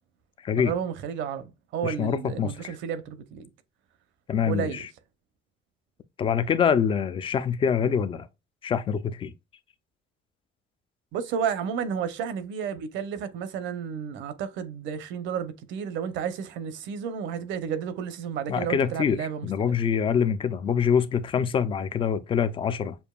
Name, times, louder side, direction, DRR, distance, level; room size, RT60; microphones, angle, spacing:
voice 1, 0.6-3.4 4.5-4.8 11.1-19.7, right 7 dB, 65° right, 0.7 m, -32 dB
voice 2, 1.8-2.7 4.3-4.9 6.2-8.3 8.6-9.3 18.5-23.0, left 7 dB, 25° left, 0.4 m, -25 dB
6.9 x 2.6 x 2.3 m
cardioid pair, 175°, 21 cm